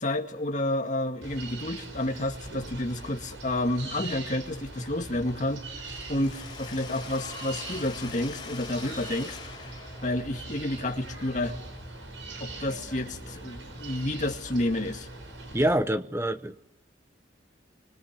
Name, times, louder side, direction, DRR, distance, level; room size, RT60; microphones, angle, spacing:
voice 1, 0.0-9.4 10.0-11.6 12.4-15.1, left 1 dB, 40° left, 4 dB, 2.1 m, -30 dB
sound 1, 1.2-15.7, right 2 dB, 90° right, 5.5 m, -41 dB
Mechanisms, 5.8-11.7, left 5 dB, 25° left, 5.5 m, -44 dB
voice 2, 15.5-16.6, right 1 dB, 15° right, 10 dB, 1.0 m, -25 dB
28.5 x 26.0 x 6.0 m, 0.91 s
head